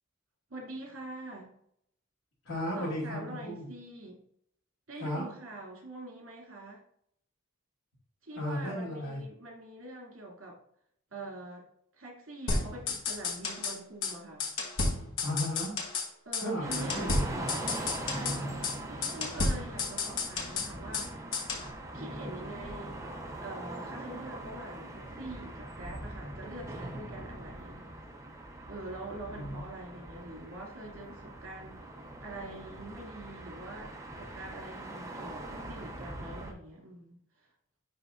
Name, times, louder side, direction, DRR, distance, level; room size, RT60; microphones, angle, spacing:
voice 1, 0.5-1.5 2.7-4.2 4.9-6.8 8.2-10.6 11.1-11.7 11.9-14.5 16.2-17.1 18.0-21.2 21.9-23.0 23.4-27.9 28.7-31.9 32.2-37.5, right 2 dB, 65° right, -1 dB, 2.5 m, -44 dB
voice 2, 2.4-3.7 5.0-5.3 8.3-9.2 15.2-15.8 16.4-17.5 29.3-29.6, left 1 dB, 80° left, -7 dB, 2.4 m, -35 dB
sound 1, 12.5-13.8 14.0-14.1 14.4-16.1 16.3-16.5 16.7-18.4 18.6-18.8 19.0-21.1 21.3-21.7, left 3 dB, 65° left, 1.3 m, -32 dB
sound 2, 16.6-36.5, right 1 dB, 15° right, 0.8 m, -42 dB
10.5 x 3.6 x 2.6 m, 0.69 s
head